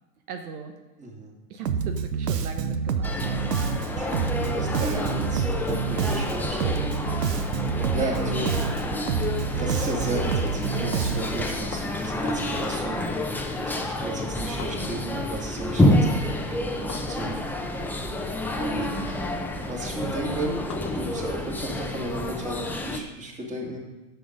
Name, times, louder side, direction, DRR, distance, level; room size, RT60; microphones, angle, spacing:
voice 1, 0.3-0.8 1.5-3.2 7.9-8.2 14.7-15.1 18.9-19.1, right 5 dB, 65° right, 5 dB, 1.1 m, -38 dB
voice 2, 1.0-1.3 3.8-7.2 7.9-8.5 9.6-13.3 13.7-17.4 18.5-18.9 19.6-23.8, right 2 dB, 15° right, -2 dB, 2.3 m, -34 dB
Bass guitar, 1.6-11.5, right 6 dB, 90° right, 0.8 m, -27 dB
sound 1, 3.0-23.0, left 1 dB, 5° left, 0.7 m, -28 dB
sound 2, 11.7-12.7 13.6-15.2 15.5-22.8, left 8 dB, 75° left, 1.0 m, -45 dB
10.5 x 6.9 x 5.2 m, 1.1 s
hypercardioid pair, 105°, 47 cm